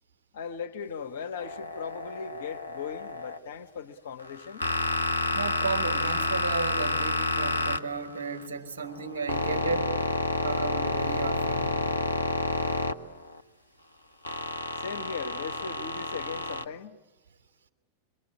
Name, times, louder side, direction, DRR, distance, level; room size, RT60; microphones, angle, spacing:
voice 1, 0.3-4.7 14.8-17.0, left 6 dB, 60° left, 1.3 m, -38 dB
sound 1, 1.4-3.4 4.2-8.5 8.8-13.4 14.2-16.6, left 2 dB, 80° left, 0.9 m, -30 dB
voice 2, 5.3-10.0 10.4-11.9, right 4 dB, 60° right, 3.4 m, -34 dB
26.5 x 24.0 x 8.7 m
figure-of-eight pair, 90°, 0 cm